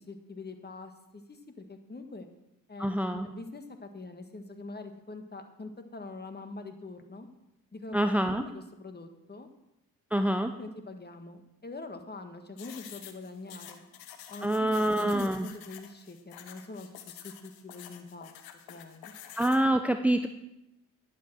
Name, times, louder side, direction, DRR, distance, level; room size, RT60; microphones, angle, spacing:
voice 1, 0.1-2.3 2.7-7.3 7.7-9.5 10.6-13.8 14.3-15.1 15.4-18.3 18.7-19.1, left 3 dB, 30° left, 7 dB, 1.7 m, -44 dB
voice 2, 2.8-3.3 7.9-8.4 10.1-10.5 14.4-15.5 19.4-20.3, right 1 dB, 5° right, 8 dB, 0.7 m, -26 dB
sound 1, 12.6-19.7, left 10 dB, 85° left, 1.1 m, -48 dB
11.0 x 7.6 x 6.2 m, 0.87 s
supercardioid pair, 65°, 36 cm